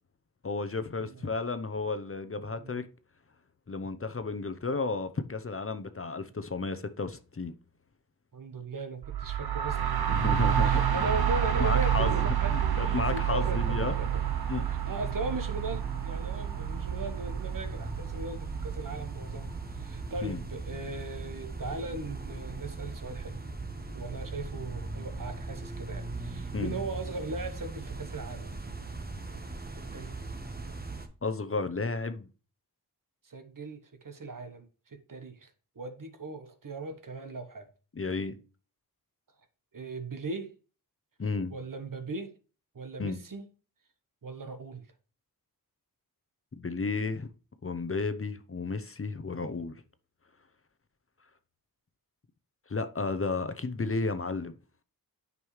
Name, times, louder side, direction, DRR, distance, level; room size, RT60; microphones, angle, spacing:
voice 1, 0.4-2.9 3.7-7.5 10.1-10.8 11.6-12.3 12.5-14.0 14.5-14.7 20.2-20.4 26.5-26.7 31.2-32.3 38.0-38.4 41.2-41.5 43.0-43.2 46.5-47.3 47.6-49.7 52.7-54.6, left 3 dB, 35° left, 0.7 m, -32 dB
voice 2, 1.0-1.3 2.5-2.8 8.3-9.8 10.1-10.2 10.6-14.2 14.6-19.5 19.7-23.4 23.9-28.6 29.8-30.1 33.2-35.5 35.8-37.7 39.7-40.5 41.5-42.3 42.7-43.5 44.2-44.8, right 2 dB, 55° right, 1.1 m, -38 dB
sound 1, 9.0-20.7, right 10 dB, 75° right, 0.8 m, -29 dB
sound 2, 12.5-31.1, right 3 dB, 25° right, 1.2 m, -39 dB
9.3 x 5.4 x 3.2 m
cardioid pair, 40°, 38 cm